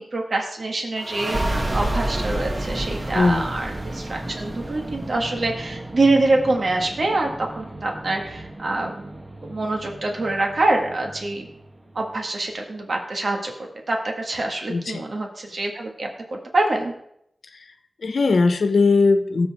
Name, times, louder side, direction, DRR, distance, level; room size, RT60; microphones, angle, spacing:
voice 1, 0.0-9.1 9.4-11.5 12.0-16.9, right 2 dB, 65° right, 2 dB, 1.9 m, -25 dB
sound 1, 1.0-12.2, right 1 dB, 30° right, 1.3 m, -31 dB
voice 2, 3.1-3.5 14.7-15.0 18.0-19.5, left 3 dB, 80° left, 8 dB, 1.1 m, -19 dB
18.5 x 7.5 x 3.6 m, 0.75 s
wide cardioid pair, 75°, 0 cm